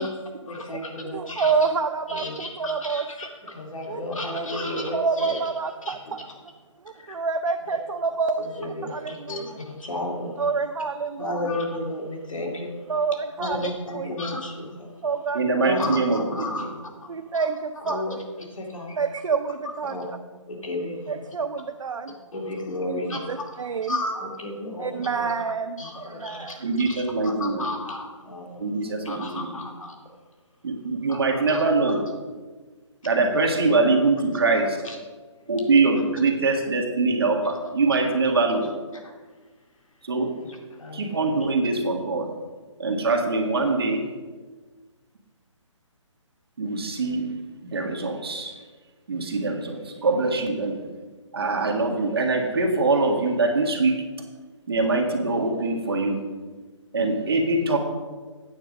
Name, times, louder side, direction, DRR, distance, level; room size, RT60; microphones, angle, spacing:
voice 1, 0.5-1.5 2.1-5.4 5.8-6.1 7.0-7.2 7.7-7.8 8.4-10.5 11.2-12.7 13.4-14.9 15.6-17.5 17.8-19.0 19.8-20.1 20.5-21.3 22.3-23.6 23.9-25.3 25.8-26.6 26.8-30.0 31.1-32.0 34.8-35.0 37.9-38.0 39.0-39.1 40.4-41.1, left 2 dB, 85° left, 1 dB, 2.5 m, -33 dB
voice 2, 1.1-3.0 3.9-4.5 4.9-6.3 7.1-9.4 10.4-11.4 12.9-14.2 15.0-15.6 17.1-18.0 19.0-20.0 21.1-22.2 22.9-24.0 24.8-26.7, right 5 dB, 75° right, 5 dB, 0.6 m, -28 dB
voice 3, 15.3-16.2 26.6-27.6 28.6-29.5 30.6-32.0 33.0-34.8 35.5-38.7 40.0-40.3 40.9-42.3 42.8-44.0 46.6-47.3 47.6-48.5 49.1-50.8 51.3-54.0 54.7-56.2 56.9-57.8, right 3 dB, 50° right, 1 dB, 1.7 m, -23 dB
9.1 x 7.3 x 5.2 m, 1.4 s
hypercardioid pair, 175°, 17 cm